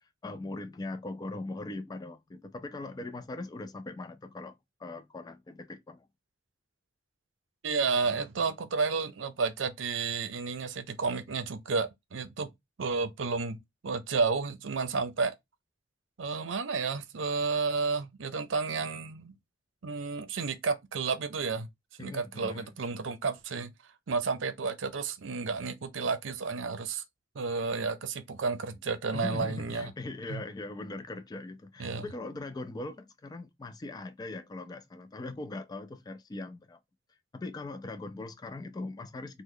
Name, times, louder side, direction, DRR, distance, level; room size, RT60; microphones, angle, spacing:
voice 1, 0.0-6.1 22.0-22.7 29.1-36.8 37.3-39.4, left 2 dB, 20° left, 0.3 m, -40 dB
voice 2, 7.6-12.5 12.8-13.6 13.8-15.3 16.2-19.3 19.8-21.7 22.0-23.7 24.1-27.0 27.4-29.9 30.3-30.4 31.8-32.0, right 4 dB, 85° right, 0.6 m, -31 dB
3.1 x 2.1 x 3.6 m
head